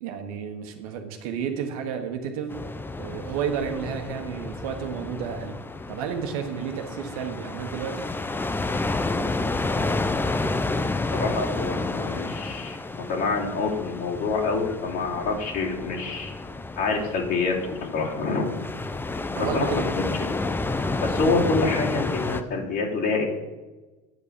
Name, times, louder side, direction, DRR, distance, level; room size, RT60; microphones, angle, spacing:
voice 1, 0.0-2.5 3.0-5.5 5.9-8.0 19.3-19.9, right 7 dB, 80° right, 6 dB, 1.3 m, -31 dB
sound 1, 2.5-22.4, left 2 dB, 10° left, 0.7 m, -30 dB
voice 2, 11.1-16.3 16.8-18.5 19.5-19.7 21.0-23.2, left 4 dB, 60° left, -3 dB, 3.0 m, -26 dB
9.0 x 5.1 x 6.9 m, 1.2 s
supercardioid pair, 90°, 18 cm